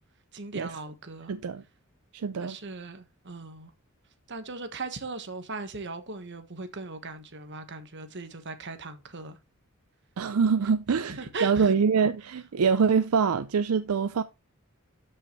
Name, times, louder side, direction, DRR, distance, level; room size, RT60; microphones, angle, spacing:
voice 1, 0.3-1.4 2.4-3.7 4.3-9.4 11.1-11.7, right 3 dB, 55° right, 1.3 m, -38 dB
voice 2, 1.3-1.6 2.1-2.5 10.2-14.2, right 6 dB, 75° right, 0.5 m, -25 dB
12.5 x 5.6 x 3.1 m
head